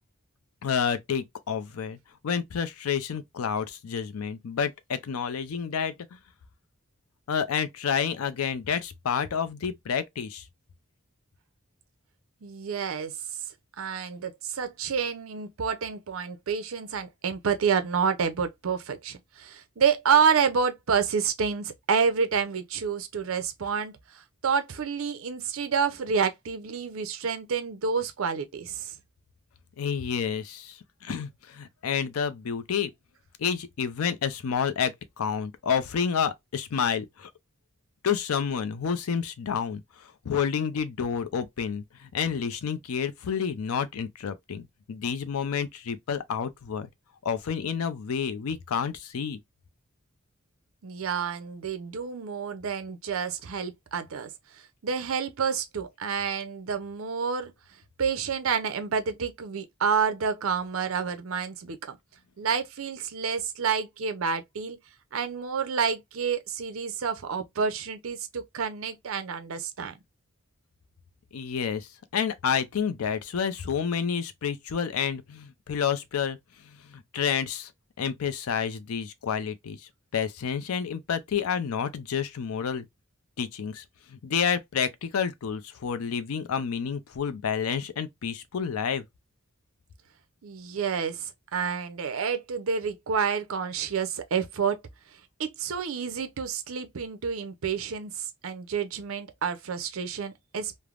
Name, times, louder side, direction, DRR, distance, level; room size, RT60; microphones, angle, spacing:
voice 1, 0.6-2.0 2.2-5.9 7.3-10.4 29.8-30.8 31.0-32.9 33.4-37.3 38.0-39.8 40.3-46.9 47.2-49.4 71.3-71.9 72.1-76.4 76.9-77.7 78.0-79.8 80.1-82.9 83.4-83.8 84.1-89.0, left 7 dB, 80° left, 0.4 m, -29 dB
voice 2, 12.4-13.1 13.8-28.9 50.8-54.3 54.8-57.5 58.0-62.0 62.4-64.8 65.1-70.0 90.4-94.8 95.4-100.8, right 6 dB, 65° right, 0.5 m, -29 dB
3.3 x 2.0 x 2.4 m
head